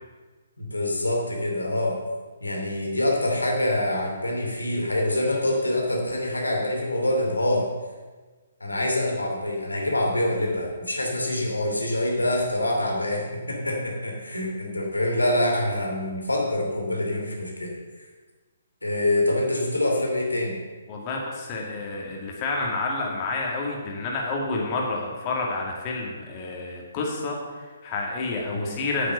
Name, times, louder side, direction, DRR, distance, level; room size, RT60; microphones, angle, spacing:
voice 1, 0.6-2.0 2.4-7.7 8.6-17.7 18.8-20.6 28.5-28.8, left 1 dB, 90° left, 0 dB, 2.7 m, -25 dB
voice 2, 20.9-29.1, left 3 dB, 30° left, -1 dB, 2.2 m, -29 dB
8.9 x 7.6 x 6.7 m, 1.3 s
figure-of-eight pair, 135°, 0 cm